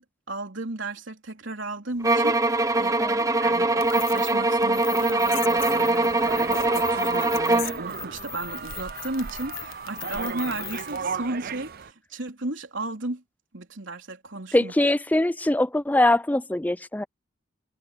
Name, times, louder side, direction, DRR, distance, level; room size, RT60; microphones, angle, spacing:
voice 1, 0.3-3.0 3.4-13.2 13.5-14.7, right 2 dB, 65° right, 3.6 m, -34 dB
sound 1, 2.0-7.8, right 2 dB, 15° right, 0.8 m, -22 dB
sound 2, 3.8-11.0, left 13 dB, 90° left, 1.3 m, -39 dB
sound 3, 5.6-11.9, right 6 dB, 50° right, 0.6 m, -35 dB
voice 2, 14.5-17.0, left 1 dB, 10° left, 0.4 m, -22 dB
head